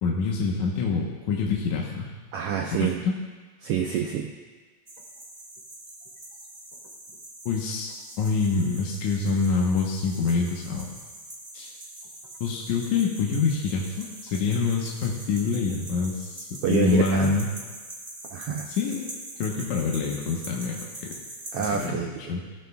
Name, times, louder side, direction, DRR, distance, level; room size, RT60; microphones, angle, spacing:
voice 1, 0.0-2.1 2.8-3.2 7.5-7.9 8.2-10.9 11.5-11.7 12.4-17.5 18.7-19.1 19.4-20.9 21.6-22.0 22.3-22.4, left 4 dB, 75° left, -2 dB, 2.5 m, -26 dB
voice 2, 2.3-3.0 3.6-4.3 16.6-17.3 18.3-18.7 21.5-22.4, right 8 dB, 90° right, 2 dB, 1.3 m, -27 dB
sound 1, 4.9-21.9, right 1 dB, 45° right, 0.5 m, -43 dB
16.5 x 13.5 x 2.3 m, 1.4 s
omnidirectional pair, 3.5 m